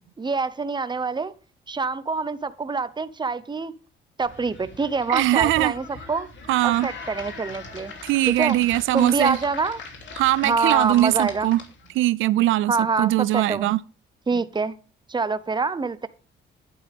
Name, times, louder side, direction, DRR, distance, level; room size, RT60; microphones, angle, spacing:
voice 1, 0.2-1.3 1.7-3.7 4.2-6.3 6.6-7.9 8.3-8.6 8.9-9.8 10.4-11.5 12.7-13.7 14.3-14.8 15.1-16.1, right 4 dB, 20° right, 0.9 m, -25 dB
sound 1, 4.2-12.0, left 3 dB, 65° left, 3.0 m, -41 dB
voice 2, 5.1-5.7 6.5-6.9 8.0-9.4 10.1-11.6 11.9-13.8, right 16 dB, 85° right, 0.4 m, -21 dB
11.0 x 9.0 x 3.6 m
cardioid pair, 90°, 20 cm